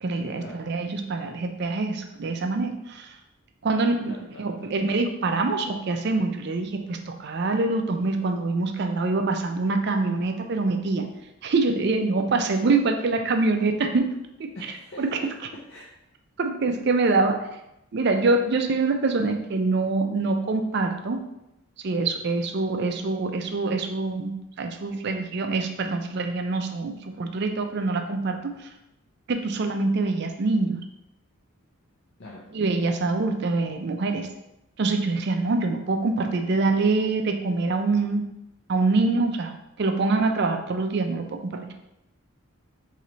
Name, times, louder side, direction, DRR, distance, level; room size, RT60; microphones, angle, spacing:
voice 1, 0.0-3.2 3.6-11.1 11.4-14.1 14.4-14.5 15.0-15.2 16.4-17.4 17.9-21.2 21.8-24.3 24.6-28.7 29.3-30.8 32.5-34.3 34.8-38.2 38.7-41.7, right 3 dB, 50° right, 5 dB, 0.4 m, -25 dB
voice 2, 4.1-4.8 14.5-15.9 32.2-32.5, left 1 dB, 55° left, -4 dB, 0.5 m, -43 dB
3.2 x 3.1 x 3.8 m, 0.87 s
head